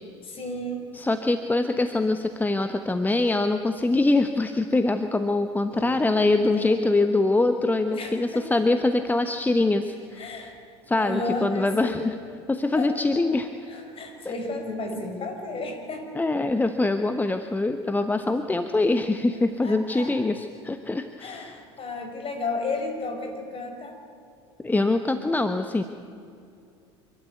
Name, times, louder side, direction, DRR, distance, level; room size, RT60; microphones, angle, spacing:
voice 1, 0.2-0.9 5.7-6.1 6.5-6.8 7.9-8.5 10.1-12.0 12.8-13.2 13.7-16.1 19.6-20.1 21.2-24.0, left 2 dB, 40° left, 4 dB, 5.6 m, -33 dB
voice 2, 0.9-10.5 10.9-12.1 12.5-13.5 16.1-21.6 24.6-25.8, left 2 dB, 10° left, 8 dB, 1.1 m, -24 dB
27.5 x 12.5 x 9.4 m, 2.5 s
hypercardioid pair, 75°, 15 cm